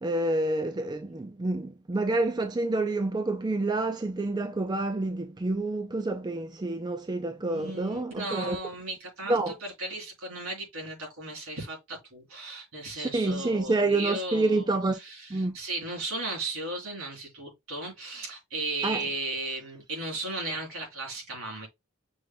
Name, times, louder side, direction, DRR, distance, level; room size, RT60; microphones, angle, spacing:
voice 1, 0.0-8.6 9.3-9.5 12.9-15.0 15.3-15.6 18.8-19.0, right 2 dB, 20° right, 0.4 m, -28 dB
voice 2, 7.4-21.7, right 2 dB, 80° right, 3.3 m, -36 dB
6.1 x 3.7 x 2.2 m
head